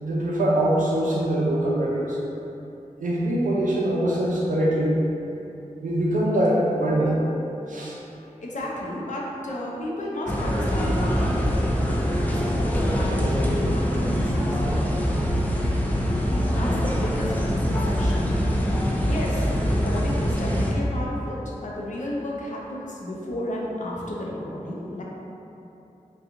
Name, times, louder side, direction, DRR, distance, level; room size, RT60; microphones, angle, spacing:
voice 1, 0.0-2.2 3.0-5.0 5.8-7.2 7.7-8.0 12.1-12.3, right 1 dB, 75° right, -4 dB, 0.6 m, -23 dB
voice 2, 8.4-11.9 12.3-14.6 15.8-16.0 16.5-18.3 19.0-25.0, left 1 dB, 65° left, -4 dB, 0.6 m, -33 dB
sound 1, 10.3-20.7, equal, 10° left, 0.5 m, -24 dB
2.8 x 2.3 x 3.6 m, 2.9 s
cardioid pair, 45°, 14 cm